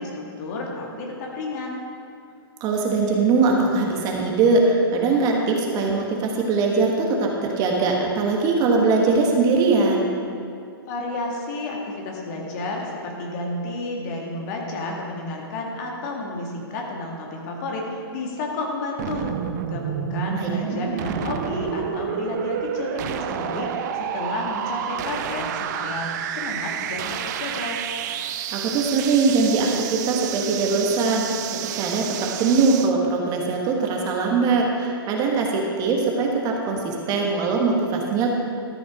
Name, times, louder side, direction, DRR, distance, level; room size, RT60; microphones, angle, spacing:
voice 1, 0.0-1.8 10.9-19.3 19.7-27.8, left 2 dB, 45° left, 0 dB, 2.1 m, -31 dB
voice 2, 2.6-10.1 20.3-20.5 20.9-21.0 28.5-38.3, right 4 dB, 30° right, 0 dB, 1.5 m, -21 dB
sound 1, 19.0-32.9, right 9 dB, 45° right, 0.6 m, -30 dB
13.0 x 7.1 x 5.0 m, 2.3 s
hypercardioid pair, 125°, 13 cm